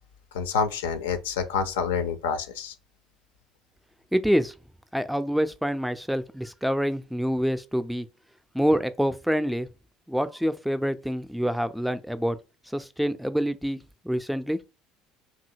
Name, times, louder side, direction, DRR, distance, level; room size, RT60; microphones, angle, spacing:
voice 1, 0.3-2.7, left 6 dB, 75° left, 0.4 m, -27 dB
voice 2, 4.1-4.5 4.9-8.1 8.5-9.7 10.1-12.4 12.7-13.8 14.0-14.6, equal, ahead, 0.4 m, -26 dB
2.7 x 2.7 x 2.6 m
figure-of-eight pair, 65°, 0 cm